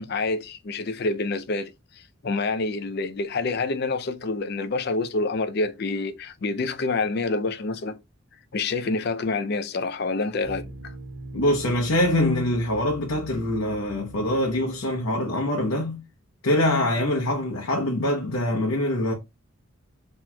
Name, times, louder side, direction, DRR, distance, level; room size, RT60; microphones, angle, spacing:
voice 1, 0.0-8.0 8.5-10.9, left 3 dB, 50° left, 0.4 m, -27 dB
sound 1, 10.4-15.4, right 1 dB, 55° right, 1.0 m, -42 dB
voice 2, 11.3-16.0 16.4-19.1, left 1 dB, 80° left, 0.8 m, -24 dB
5.9 x 3.0 x 2.2 m
head